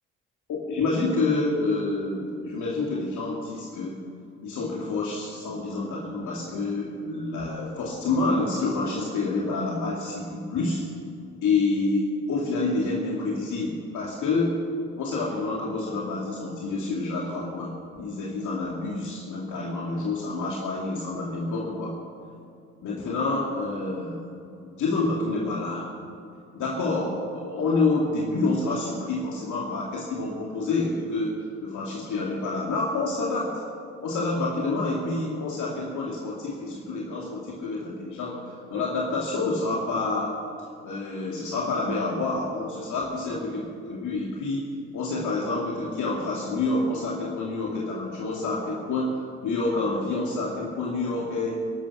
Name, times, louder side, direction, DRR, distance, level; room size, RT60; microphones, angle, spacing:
voice 1, 0.5-4.0 4.4-10.8 11.4-14.6 15.0-22.0 22.8-24.2 24.6-25.9 26.5-31.3 31.6-33.6 34.0-40.4 40.8-44.7 44.9-51.6, left 3 dB, 65° left, -3 dB, 2.6 m, -28 dB
17.0 x 12.5 x 5.9 m, 2.5 s
supercardioid pair, 60°, 32 cm